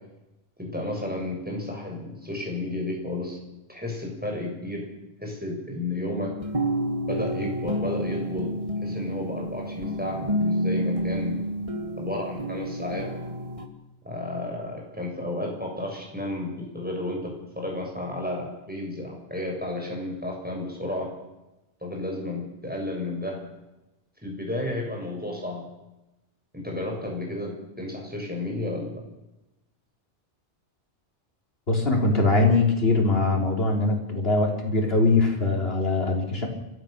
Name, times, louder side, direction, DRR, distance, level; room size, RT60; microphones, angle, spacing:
voice 1, 0.6-3.4 3.7-4.8 5.2-6.3 7.1-8.5 8.8-11.3 11.9-13.1 14.0-21.1 21.8-23.4 24.2-25.6 26.5-28.9, left 1 dB, 10° right, -1 dB, 6.6 m, -32 dB
sound 1, 6.4-13.7, equal, 30° right, 1.9 m, -29 dB
voice 2, 31.7-36.5, left 3 dB, 60° left, 1 dB, 4.0 m, -22 dB
29.0 x 14.0 x 6.8 m, 0.98 s
omnidirectional pair, 1.2 m